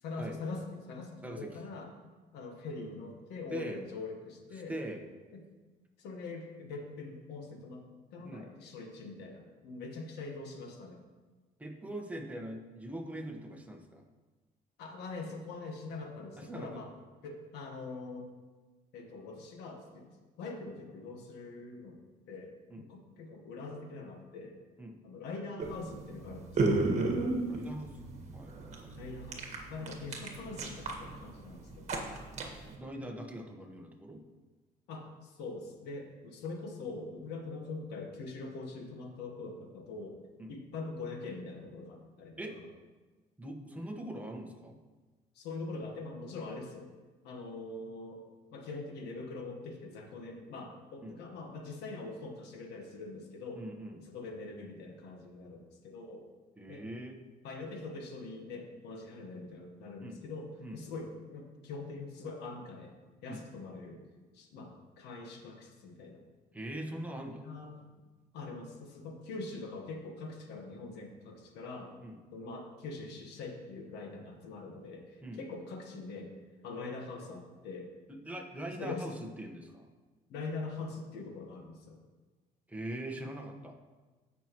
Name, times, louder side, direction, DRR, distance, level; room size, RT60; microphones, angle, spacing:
voice 1, 0.0-1.9 2.3-4.7 5.3-5.4 6.0-7.8 8.1-11.0 14.8-16.9 17.2-18.3 18.9-20.1 20.4-22.0 22.3-22.5 22.8-24.6 25.0-26.8 29.0-32.0 34.9-40.2 40.5-42.6 45.3-46.9 47.2-48.2 48.5-53.6 54.1-56.3 56.7-56.8 57.4-62.9 63.2-64.0 64.3-66.2 67.4-67.7 68.3-71.9 72.3-76.3 76.6-77.9 78.8-79.0 80.3-82.0, left 3 dB, 85° left, 3 dB, 1.5 m, -43 dB
voice 2, 3.5-3.8 4.5-5.0 8.2-8.5 11.6-14.0 16.4-16.9 22.7-22.8 24.8-25.0 27.5-28.0 28.3-29.0 32.8-34.2 40.4-40.6 42.4-42.6 43.4-44.7 51.0-51.2 53.5-54.1 56.6-57.2 60.0-60.2 60.6-60.8 63.3-63.5 66.5-67.5 72.0-72.2 75.2-75.4 78.1-79.9 82.7-83.8, right 1 dB, 10° right, 1 dB, 1.3 m, -42 dB
sound 1, 25.6-32.8, right 3 dB, 45° right, 1.7 m, -34 dB
16.0 x 6.0 x 3.1 m, 1.3 s
cardioid pair, 110°, 17 cm